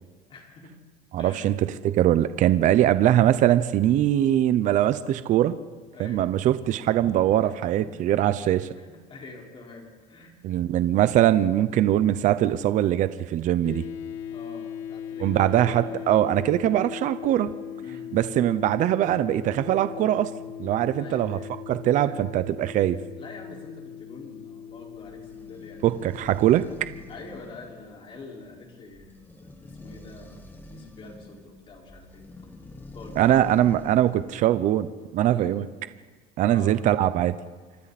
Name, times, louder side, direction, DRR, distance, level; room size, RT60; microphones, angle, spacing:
voice 1, 0.3-0.7 1.2-1.6 5.9-6.3 7.4-7.9 8.4-10.3 11.4-11.5 14.3-15.9 17.8-18.1 20.9-21.5 22.0-22.2 23.1-25.9 26.5-26.8 27.1-32.2 32.9-33.6 35.2-35.5 36.5-36.7, left 3 dB, 30° left, -1 dB, 5.0 m, -45 dB
voice 2, 1.1-1.5 1.8-5.5 6.0-8.7 10.4-13.8 15.2-17.5 18.1-20.3 20.6-21.4 21.7-23.0 25.8-26.6 33.2-35.6 36.4-37.3, right 12 dB, 45° right, 13 dB, 0.8 m, -22 dB
sound 1, 13.6-27.2, left 8 dB, 85° left, 1.6 m, -39 dB
sound 2, 24.7-34.4, left 2 dB, 10° left, 1.7 m, -47 dB
28.5 x 25.0 x 4.3 m, 1.4 s
cardioid pair, 135°, 17 cm